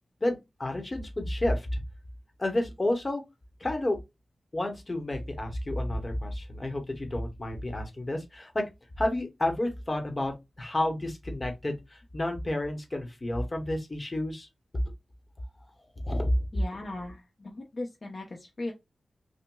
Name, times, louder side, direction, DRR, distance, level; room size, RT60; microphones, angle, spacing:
voice 1, 0.2-1.8 2.4-3.2 3.6-4.0 4.5-8.6 9.0-11.8 12.1-14.5 16.0-16.4, left 1 dB, 30° left, 1.0 m, -30 dB
voice 2, 16.5-18.7, left 2 dB, 45° left, 0.6 m, -38 dB
5.9 x 2.1 x 2.2 m
wide cardioid pair, 110°, 0 cm